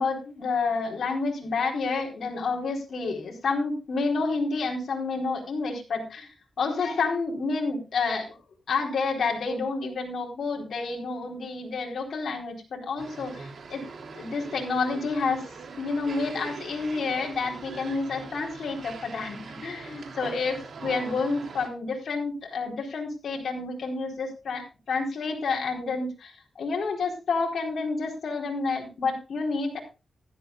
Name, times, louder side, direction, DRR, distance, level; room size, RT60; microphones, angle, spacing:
voice 1, 0.0-6.3 6.6-8.3 8.7-13.8 14.2-15.4 15.8-29.8, left 4 dB, 70° left, 0 dB, 4.4 m, -29 dB
sound 1, 13.0-21.7, right 4 dB, 65° right, 3.4 m, -42 dB
16.0 x 13.5 x 2.5 m, 0.30 s
cardioid pair, 80°, 0 cm